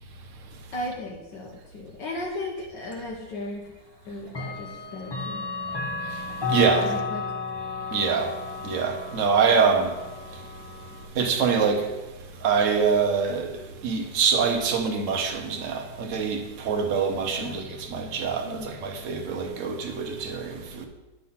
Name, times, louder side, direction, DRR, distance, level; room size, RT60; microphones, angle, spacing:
voice 1, 0.7-3.6 4.1-5.5 6.8-7.2 17.4-17.6 18.4-18.8, left 1 dB, 70° left, 1.6 m, -35 dB
Clock, 2.9-3.0 4.3-11.1, left 4 dB, 40° left, 0.3 m, -33 dB
voice 2, 6.5-6.9 7.9-8.4 8.6-10.0 11.1-11.9 12.4-20.9, right 5 dB, 50° right, 1.1 m, -25 dB
9.5 x 3.8 x 5.7 m
omnidirectional pair, 2.0 m